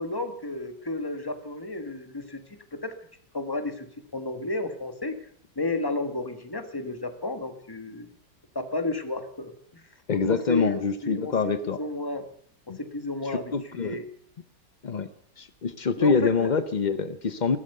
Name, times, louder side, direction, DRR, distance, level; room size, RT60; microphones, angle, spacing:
voice 1, 0.0-2.4 2.7-2.9 3.3-5.2 5.5-8.1 8.5-9.8 10.1-11.3 11.6-12.2 12.8-14.0 16.0-16.5, left 2 dB, 15° left, 7 dB, 1.3 m, -32 dB
voice 2, 10.1-11.8 12.7-12.8 13.3-14.0 14.8-15.1 15.4-17.6, left 5 dB, 75° left, 11 dB, 0.4 m, -25 dB
16.0 x 13.0 x 6.7 m, 0.66 s
omnidirectional pair, 2.0 m